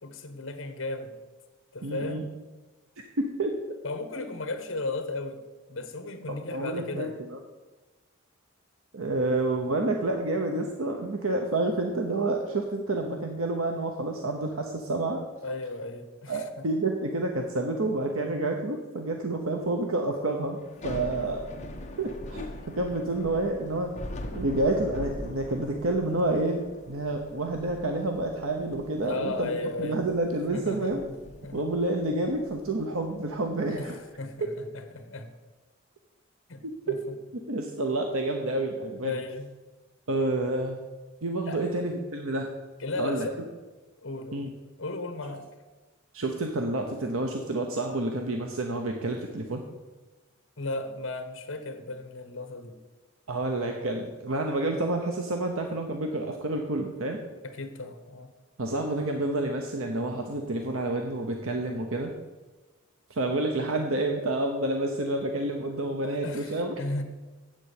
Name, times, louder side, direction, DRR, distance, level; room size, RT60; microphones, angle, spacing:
voice 1, 0.0-1.1 1.7-2.3 3.8-5.4 5.7-7.1 15.4-16.5 21.2-21.3 29.0-30.0 30.5-31.6 33.7-35.3 36.5-36.6 36.9-37.0 39.0-39.5 41.5-41.6 42.8-43.4 44.0-44.5 44.8-45.4 50.6-52.8 57.4-58.3 66.0-67.0, left 2 dB, 60° left, 9 dB, 1.2 m, -35 dB
voice 2, 1.8-2.2 3.2-3.6 6.3-7.4 8.9-15.2 16.3-20.6 20.8-21.5 22.0-23.9 24.3-31.0 31.5-34.0 36.9-37.0 37.3-39.2 40.1-40.8 41.2-42.5 43.0-43.3 44.3-44.5 46.1-49.6 53.3-57.2 58.6-62.1 63.1-66.7, right 2 dB, 75° right, 3 dB, 0.9 m, -29 dB
Thunder / Rain, 20.6-33.8, left 1 dB, 35° left, 1.0 m, -42 dB
8.0 x 7.4 x 8.3 m, 1.2 s
head